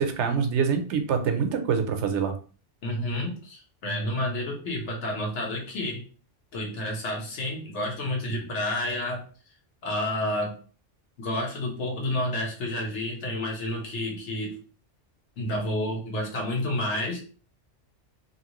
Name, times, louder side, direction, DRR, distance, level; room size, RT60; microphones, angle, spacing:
voice 1, 0.0-2.3, right 6 dB, 75° right, 6 dB, 0.9 m, -25 dB
voice 2, 2.8-6.0 6.5-9.2 9.8-10.5 11.2-14.6 15.4-17.2, left 1 dB, 70° left, 0 dB, 1.3 m, -30 dB
2.9 x 2.6 x 2.9 m, 0.39 s
omnidirectional pair, 1.2 m